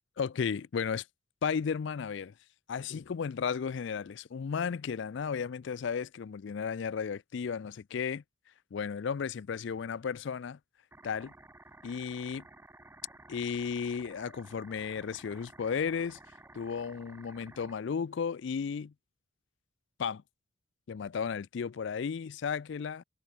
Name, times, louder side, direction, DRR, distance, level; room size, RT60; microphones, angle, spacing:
voice 1, 0.2-1.1 1.4-2.3 2.7-8.2 8.7-10.6 11.0-11.3 11.8-12.4 13.3-16.2 16.5-18.9 20.0-20.2 20.9-23.0, left 6 dB, 55° left, 0.4 m, -34 dB
sound 1, 10.9-17.7, right 2 dB, 10° right, 0.5 m, -54 dB
head